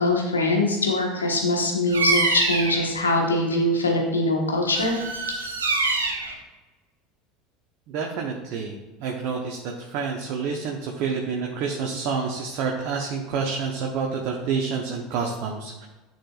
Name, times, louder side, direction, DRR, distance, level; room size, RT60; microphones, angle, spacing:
voice 1, 0.0-5.2, left 2 dB, 80° left, 0 dB, 1.4 m, -23 dB
Bird vocalization bird call bird song, 1.9-2.9 4.7-6.3, right 3 dB, 80° right, 1.1 m, -25 dB
voice 2, 7.9-15.9, right 5 dB, 55° right, 0 dB, 1.0 m, -28 dB
10.0 x 6.0 x 2.5 m, 1.2 s
figure-of-eight pair, 70°, 0 cm